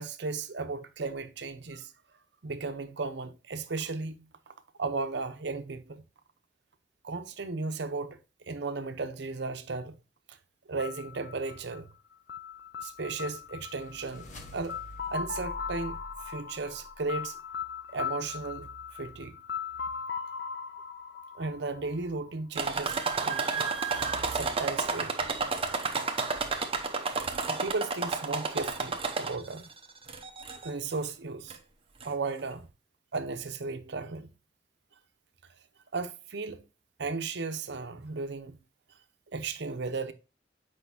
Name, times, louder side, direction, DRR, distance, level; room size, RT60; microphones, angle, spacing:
voice 1, 0.0-1.9 2.4-4.5 4.8-6.0 7.0-8.2 8.5-10.0 10.3-10.4 10.7-11.9 12.8-14.3 14.5-14.8 15.1-17.4 17.9-19.4 21.3-23.6 24.3-25.1 27.5-29.7 30.6-31.6 32.0-32.7 33.1-34.3 35.9-36.6 37.0-38.6 39.3-40.1, right 3 dB, 65° right, 0.8 m, -35 dB
sound 1, 10.8-22.6, left 6 dB, 65° left, 0.6 m, -39 dB
sound 2, 12.8-17.1, equal, 45° left, 1.2 m, -48 dB
sound 3, 22.5-29.6 30.1-30.7 31.5-31.6 32.0-32.1, right 4 dB, 30° right, 0.8 m, -31 dB
8.3 x 5.1 x 2.7 m
head